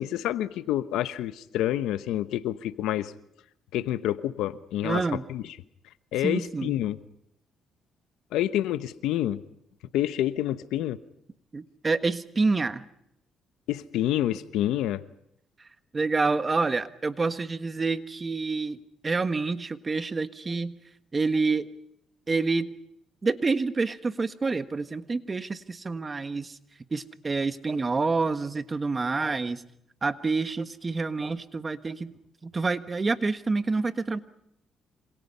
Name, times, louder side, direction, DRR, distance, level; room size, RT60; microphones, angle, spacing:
voice 1, 0.0-3.1 3.7-5.0 5.3-5.4 6.1-7.0 8.3-9.4 9.9-11.0 13.7-15.0, left 13 dB, 90° left, 13 dB, 1.0 m, -28 dB
voice 2, 4.8-5.2 6.2-6.7 11.5-12.8 15.9-18.8 19.0-20.8 21.1-21.7 22.3-22.7 23.2-26.6 26.9-29.6 30.0-32.1 32.4-34.2, right 3 dB, 30° right, 11 dB, 1.4 m, -27 dB
27.5 x 26.0 x 5.6 m, 0.76 s
cardioid pair, 90°, 0 cm